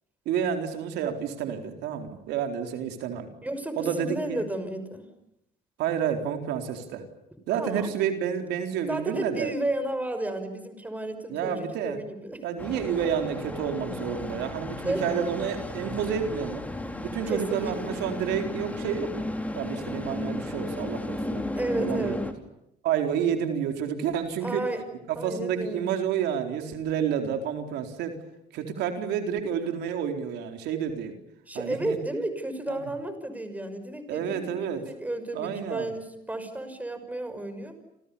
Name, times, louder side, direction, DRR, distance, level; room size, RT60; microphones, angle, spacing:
voice 1, 0.3-3.3 3.8-4.4 5.8-7.0 7.5-9.5 11.3-12.0 12.4-16.6 17.1-19.2 19.5-21.4 21.7-22.1 22.8-24.6 25.1-28.1 28.5-31.1 31.5-32.0 32.7-32.8 34.1-34.8 35.3-35.9, right 8 dB, 85° right, 5 dB, 4.2 m, -29 dB
voice 2, 3.4-5.1 7.6-7.9 8.9-12.4 14.8-15.2 17.3-18.0 21.5-22.2 24.4-24.8 25.2-25.8 31.5-37.8, right 1 dB, 10° right, 9 dB, 6.1 m, -33 dB
sound 1, 12.6-22.3, left 1 dB, 10° left, 4.0 m, -34 dB
29.0 x 28.5 x 7.1 m, 0.82 s
cardioid pair, 110°, 17 cm